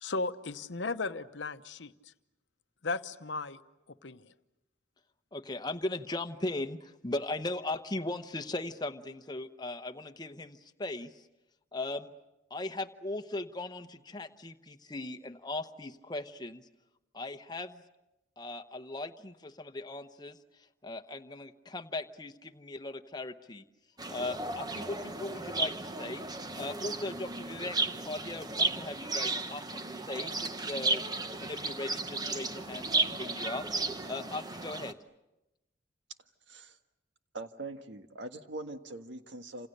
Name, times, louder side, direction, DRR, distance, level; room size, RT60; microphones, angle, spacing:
voice 1, 0.0-1.9 2.8-3.6 4.0-4.3, left 3 dB, 70° left, 11 dB, 0.9 m, -35 dB
voice 2, 5.3-11.3 11.7-12.1 12.5-16.7 17.1-17.8 18.4-23.6 24.1-26.2 26.5-31.0 31.4-33.6 34.0-35.0, left 2 dB, 20° left, 8 dB, 1.0 m, -38 dB
sound 1, 24.0-34.9, right 3 dB, 20° right, 1.0 m, -34 dB
voice 3, 37.3-39.7, right 2 dB, 70° right, 7 dB, 1.6 m, -42 dB
28.5 x 27.0 x 6.7 m, 0.96 s
head